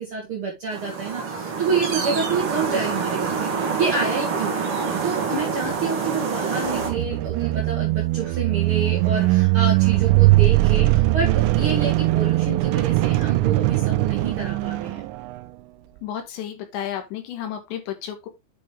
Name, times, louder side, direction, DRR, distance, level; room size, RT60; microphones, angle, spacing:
voice 1, 0.0-3.5 3.8-4.6 5.0-15.0, right 4 dB, 70° right, 1.2 m, -28 dB
sound 1, 0.7-6.9, right 5 dB, 50° right, 1.6 m, -26 dB
sound 2, 6.7-15.4, right 18 dB, 85° right, 3.2 m, -20 dB
voice 2, 16.0-18.3, left 10 dB, 70° left, 3.4 m, -32 dB
9.6 x 5.4 x 3.3 m
omnidirectional pair, 5.7 m